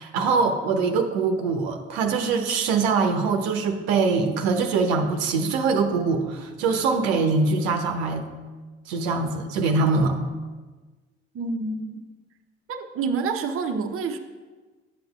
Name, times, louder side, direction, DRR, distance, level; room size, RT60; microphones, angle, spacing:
voice 1, 0.0-8.3 8.9-10.2, right 4 dB, 70° right, 4 dB, 0.9 m, -23 dB
voice 2, 11.3-12.0 12.7-14.2, right 4 dB, 40° right, 4 dB, 0.9 m, -28 dB
11.5 x 7.8 x 2.4 m, 1.3 s
hypercardioid pair, 55°, 34 cm